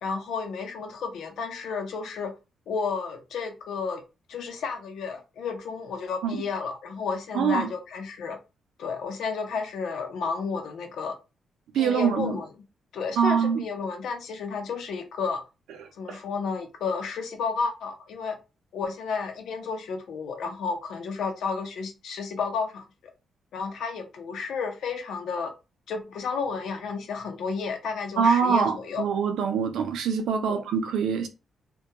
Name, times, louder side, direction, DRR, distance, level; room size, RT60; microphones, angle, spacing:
voice 1, 0.0-2.3 2.7-4.0 4.3-8.4 8.8-11.1 11.7-12.5 12.9-15.4 15.9-18.4 18.7-22.8 23.5-25.5 25.9-29.1 30.5-30.6, left 5 dB, 80° left, 0.6 m, -32 dB
voice 2, 7.3-7.7 11.7-12.4 13.2-13.7 16.1-16.2 28.2-31.3, right 6 dB, 90° right, 0.4 m, -24 dB
2.2 x 2.2 x 2.7 m
cardioid pair, 125°, 0 cm